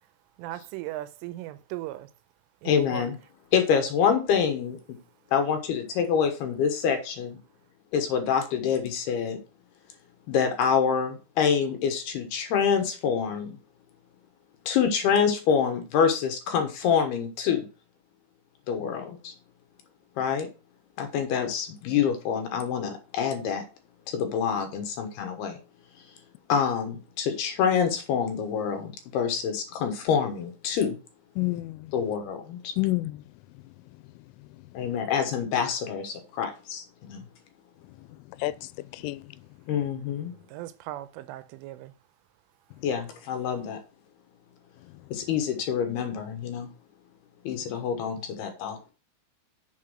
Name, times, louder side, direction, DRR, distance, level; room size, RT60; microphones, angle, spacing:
voice 1, 0.4-2.1 2.6-3.1 40.5-41.9, right 15 dB, 90° right, 3.2 m, -38 dB
voice 2, 2.6-3.2 3.5-5.0 5.3-7.4 7.9-9.4 10.3-13.6 14.7-17.7 18.7-19.3 20.2-20.5 21.0-23.7 24.1-25.6 26.5-31.0 31.9-32.7 34.7-37.2 39.7-40.3 42.8-43.8 45.1-46.7 47.4-48.8, left 7 dB, 70° left, 2.7 m, -26 dB
voice 3, 31.4-31.9 32.8-33.2 38.3-39.2, left 19 dB, 90° left, 3.1 m, -29 dB
7.0 x 5.8 x 6.3 m
omnidirectional pair, 5.6 m